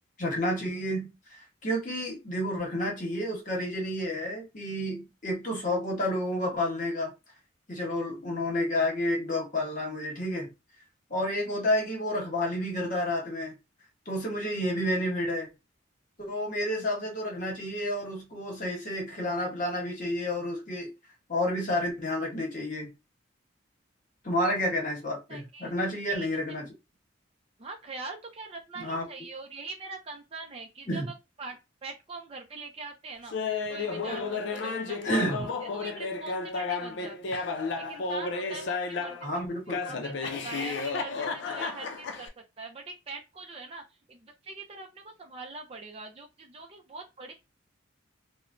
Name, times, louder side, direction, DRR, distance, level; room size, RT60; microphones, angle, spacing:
voice 1, 0.2-7.1 7.7-10.5 11.1-13.5 14.1-15.5 16.2-20.9 21.3-22.9 24.2-26.7 28.8-29.1 30.9-31.1 35.0-35.5 39.2-40.1, left 1 dB, 40° left, 1.1 m, -30 dB
voice 2, 25.3-25.7 26.1-26.7 27.6-33.4 33.7-37.5 37.8-39.3 39.8-43.8 44.1-47.3, right 3 dB, 30° right, 0.4 m, -43 dB
Laughter, 33.3-39.3 39.7-42.3, left 4 dB, 65° left, 0.4 m, -32 dB
3.0 x 2.1 x 2.5 m
head